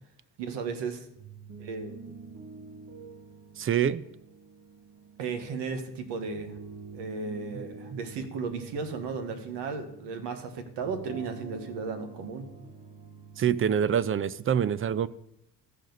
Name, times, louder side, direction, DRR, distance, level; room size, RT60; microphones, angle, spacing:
voice 1, 0.4-1.1 1.6-2.0 5.2-6.6 6.9-12.5, right 5 dB, 75° right, 1.5 m, -35 dB
sound 1, 1.2-14.4, right 4 dB, 50° right, 1.3 m, -47 dB
voice 2, 3.6-4.0 13.4-15.1, right 8 dB, 30° right, 0.4 m, -25 dB
14.5 x 5.0 x 3.9 m
supercardioid pair, 75°, 42 cm